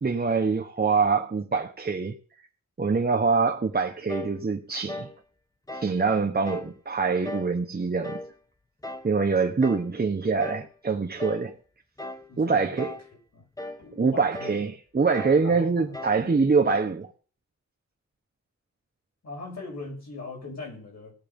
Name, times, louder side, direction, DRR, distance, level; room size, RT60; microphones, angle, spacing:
voice 1, 0.0-2.2 2.8-5.1 5.7-8.2 9.0-11.5 12.4-12.9 14.0-17.1, right 4 dB, 35° right, 1.1 m, -24 dB
sound 1, 4.1-4.4 4.9-5.2 5.7-6.0 6.5-6.7 7.2-7.6 8.0-8.3 8.8-9.1 9.6-9.9 10.4-10.7 11.2-11.5 12.0-12.3 12.8-13.1 13.6-13.8 14.3-14.6 15.1-15.4 15.9-16.2, left 2 dB, 10° left, 1.2 m, -37 dB
voice 2, 12.3-12.9 13.3-13.4 13.8-14.6 15.4-16.8 19.2-21.1, left 3 dB, 65° left, 6.1 m, -40 dB
17.5 x 8.4 x 5.3 m
wide cardioid pair, 120°, 29 cm